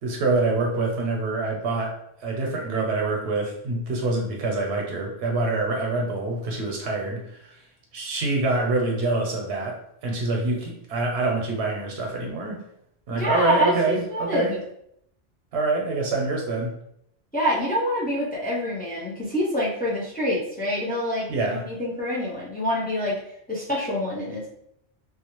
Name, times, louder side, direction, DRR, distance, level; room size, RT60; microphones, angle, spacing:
voice 1, 0.0-7.5 7.9-12.6 13.1-14.6 15.5-16.7 21.3-21.6, right 2 dB, 90° right, 0 dB, 0.9 m, -26 dB
voice 2, 13.2-14.6 17.3-23.2 23.5-24.5, equal, 15° left, -5 dB, 0.3 m, -26 dB
2.4 x 2.1 x 2.9 m, 0.72 s
omnidirectional pair, 1.1 m